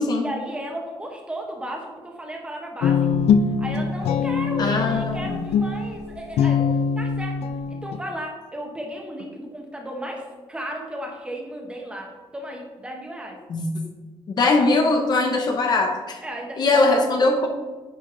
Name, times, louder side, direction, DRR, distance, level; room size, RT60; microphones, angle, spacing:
voice 1, 0.2-3.3 3.6-7.4 7.7-13.4 16.2-17.0, equal, 10° right, 0 dB, 1.2 m, -34 dB
Guitar, 2.8-8.0, left 6 dB, 85° left, 0.5 m, -23 dB
voice 2, 4.6-5.3 13.5-13.7 14.4-16.2 16.6-17.5, left 2 dB, 45° left, 4 dB, 0.9 m, -20 dB
9.7 x 5.1 x 3.9 m, 1.3 s
wide cardioid pair, 180°, 10 cm